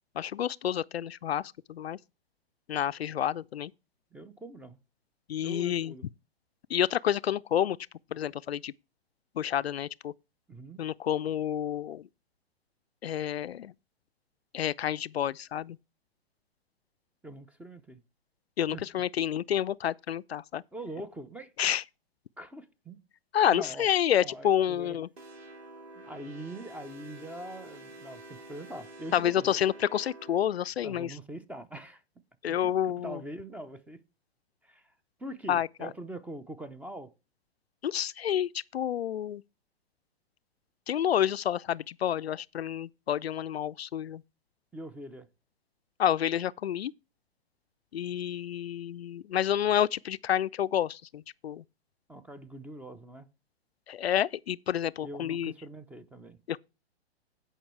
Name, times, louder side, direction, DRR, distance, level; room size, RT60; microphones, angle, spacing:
voice 1, 0.2-2.0 2.7-3.7 5.3-5.9 6.7-7.8 8.1-8.7 9.4-10.1 10.8-12.1 13.0-13.7 14.5-15.8 18.6-20.6 21.6-21.8 23.3-25.1 29.1-31.2 32.4-33.2 35.5-35.9 37.8-39.4 40.9-44.2 46.0-46.9 47.9-51.6 53.9-55.5 56.5-56.6, left 10 dB, 75° left, 0.5 m, -29 dB
voice 2, 4.1-4.8 5.4-6.0 10.5-10.8 17.2-18.0 18.7-18.8 20.7-21.5 22.4-23.0 23.5-23.9 24.2-25.0 26.0-29.6 30.8-32.0 32.5-32.7 33.0-34.0 34.6-34.9 35.2-37.1 44.7-45.3 52.1-53.3 55.0-56.4, right 1 dB, 5° right, 0.6 m, -43 dB
sound 1, 25.2-30.4, right 1 dB, 80° right, 2.3 m, -48 dB
16.5 x 5.5 x 3.2 m
figure-of-eight pair, 115°, 31 cm